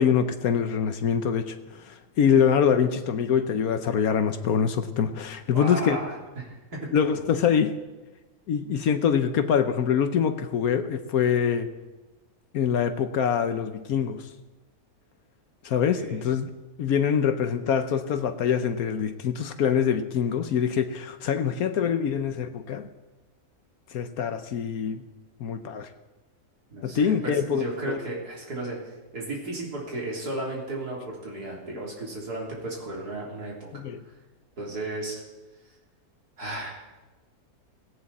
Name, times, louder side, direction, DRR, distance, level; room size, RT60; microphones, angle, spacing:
voice 1, 0.0-6.0 6.9-7.7 8.5-11.7 12.5-14.3 15.6-16.5 16.8-22.9 23.9-25.0 25.4-25.9 26.8-28.0 33.7-34.0, left 7 dB, 75° left, 9 dB, 1.3 m, -24 dB
voice 2, 5.5-6.9 7.1-7.2 16.0-16.2 26.7-28.8 29.1-33.5 34.6-35.2 36.4-36.7, right 2 dB, 90° right, -3 dB, 4.0 m, -34 dB
17.5 x 17.0 x 4.2 m, 1.1 s
omnidirectional pair, 1.6 m